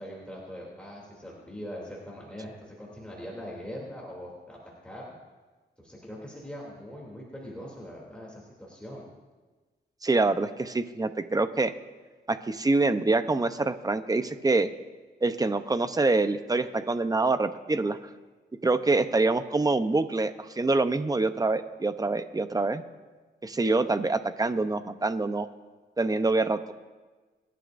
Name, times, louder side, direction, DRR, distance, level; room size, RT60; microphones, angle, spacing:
voice 1, 0.0-4.6 4.8-5.0 5.8-9.1, equal, 5° left, -4 dB, 2.9 m, -42 dB
voice 2, 10.0-11.7 12.3-14.7 15.2-18.0 18.6-22.8 23.4-25.5 26.0-26.7, right 3 dB, 20° right, 10 dB, 0.7 m, -25 dB
25.0 x 11.5 x 2.6 m, 1.3 s
cardioid pair, 95°, 19 cm